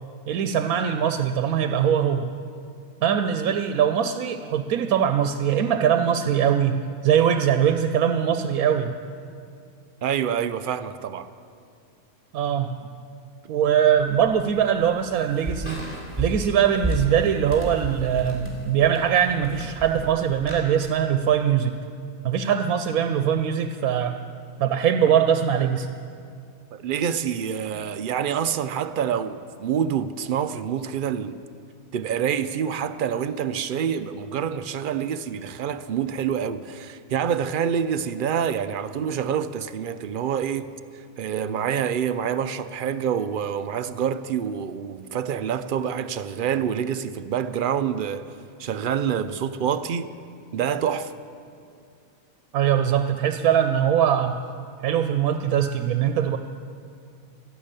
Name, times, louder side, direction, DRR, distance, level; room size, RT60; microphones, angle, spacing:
voice 1, 0.3-2.3 3.0-9.0 12.3-12.7 13.5-15.8 16.2-21.8 22.2-24.2 24.6-25.9 52.5-54.3 54.8-56.4, right 9 dB, 90° right, 1.1 m, -22 dB
voice 2, 10.0-11.3 26.7-31.4 31.9-48.3 48.6-50.2 50.5-51.1, right 8 dB, 70° right, 0.5 m, -27 dB
sound 1, 14.0-20.6, right 1 dB, 10° left, 3.6 m, -34 dB
13.0 x 12.0 x 8.8 m
omnidirectional pair, 1.5 m